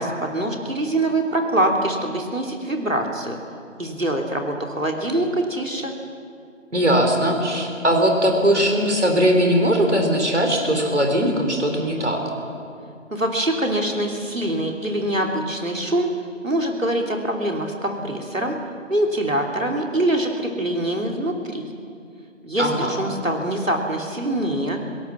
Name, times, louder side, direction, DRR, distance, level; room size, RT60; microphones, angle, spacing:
voice 1, 0.0-3.4 3.8-5.9 13.1-16.1 16.4-18.6 18.9-21.6 22.4-24.8, right 1 dB, 75° right, 2 dB, 3.3 m, -24 dB
voice 2, 6.7-12.2 22.6-22.9, equal, 60° right, 3 dB, 4.1 m, -19 dB
26.0 x 17.5 x 7.3 m, 2.4 s
figure-of-eight pair, 170°, 39 cm